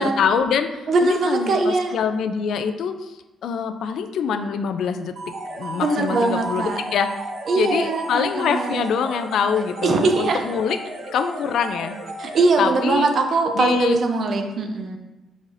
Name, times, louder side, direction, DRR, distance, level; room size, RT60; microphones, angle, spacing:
voice 1, 0.0-5.1 5.6-7.2 7.5-10.8 11.1-12.0 12.6-13.1 13.5-14.0, left 6 dB, 70° left, 8 dB, 0.3 m, -24 dB
voice 2, 0.9-1.9 5.7-6.8 7.5-8.9 9.8-10.4 12.2-15.0, right 3 dB, 45° right, 4 dB, 0.5 m, -21 dB
sound 1, 5.2-12.9, right 2 dB, 85° right, 1.4 m, -34 dB
4.7 x 4.1 x 2.5 m, 1.0 s
cardioid pair, 150°, 0 cm